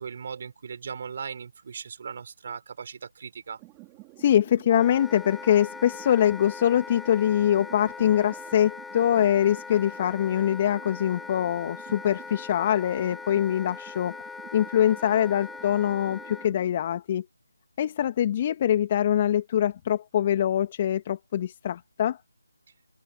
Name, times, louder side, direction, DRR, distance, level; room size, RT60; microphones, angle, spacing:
voice 1, 0.0-3.6, right 6 dB, 40° right, 5.8 m, -38 dB
sound 1, 3.6-16.6, right 28 dB, 15° right, 5.0 m, -50 dB
voice 2, 4.2-14.2 14.5-17.3 17.8-22.2, left 10 dB, 30° left, 2.2 m, -24 dB
Wind instrument woodwind instrument, 4.7-16.5, left 4 dB, 5° left, 2.2 m, -41 dB
open air
figure-of-eight pair, 155°, 0 cm